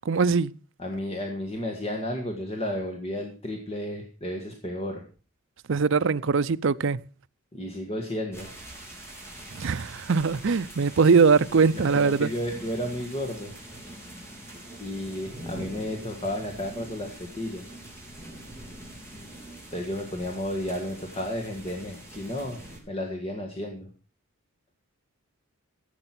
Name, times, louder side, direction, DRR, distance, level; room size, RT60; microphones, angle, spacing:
voice 1, 0.1-0.5 5.7-7.0 9.5-12.3, right 5 dB, 55° right, 0.5 m, -21 dB
voice 2, 0.8-5.0 7.5-8.5 11.8-13.5 14.8-17.7 19.7-22.6 22.9-23.9, left 1 dB, 25° left, 1.6 m, -32 dB
sound 1, 8.3-22.8, right 1 dB, 10° left, 3.7 m, -44 dB
15.0 x 7.9 x 5.9 m
head